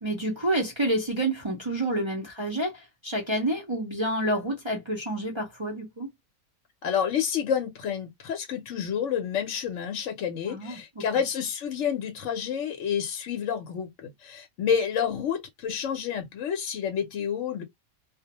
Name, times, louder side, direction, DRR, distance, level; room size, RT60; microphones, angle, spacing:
voice 1, 0.0-6.1 10.5-11.0, right 1 dB, 40° right, 0.4 m, -29 dB
voice 2, 6.8-17.6, left 8 dB, 65° left, 0.9 m, -29 dB
2.4 x 2.0 x 2.8 m
omnidirectional pair, 1.5 m